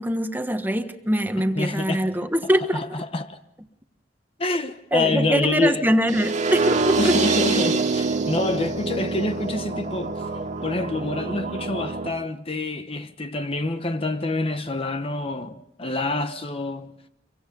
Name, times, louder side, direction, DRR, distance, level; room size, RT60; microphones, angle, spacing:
voice 1, 0.0-2.8 4.9-7.1, equal, 10° right, 1.5 m, -23 dB
voice 2, 1.6-2.1 2.7-3.4 4.4-5.8 7.0-10.3 10.6-16.9, left 2 dB, 35° left, 1.1 m, -27 dB
sound 1, 6.1-12.1, right 4 dB, 45° right, 2.2 m, -25 dB
26.5 x 24.0 x 5.4 m
head